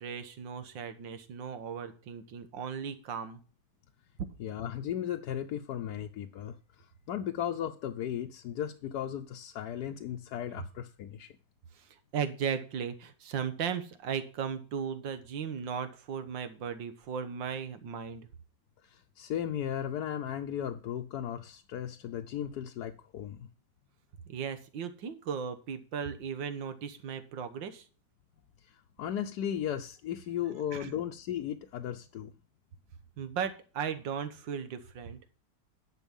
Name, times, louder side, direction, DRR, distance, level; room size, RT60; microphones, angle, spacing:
voice 1, 0.0-3.4 11.8-18.3 24.3-27.9 30.7-30.9 33.2-35.2, right 7 dB, 90° right, 1.9 m, -36 dB
voice 2, 4.4-6.6 7.1-11.3 18.8-23.5 28.6-32.3, left 10 dB, 65° left, 1.2 m, -36 dB
11.0 x 6.4 x 5.4 m
omnidirectional pair, 2.0 m